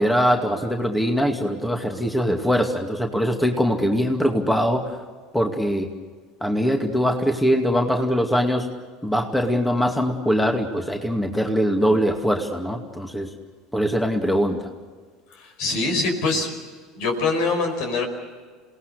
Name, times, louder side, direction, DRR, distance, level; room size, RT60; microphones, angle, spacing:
voice 1, 0.0-5.0 5.3-5.9 6.4-8.7 9.0-13.3 13.7-14.7, equal, 5° left, 3 dB, 2.4 m, -22 dB
voice 2, 15.3-16.5 16.9-18.0, left 3 dB, 65° left, 5 dB, 5.0 m, -24 dB
29.0 x 18.5 x 6.8 m, 1.5 s
hypercardioid pair, 75°, 0 cm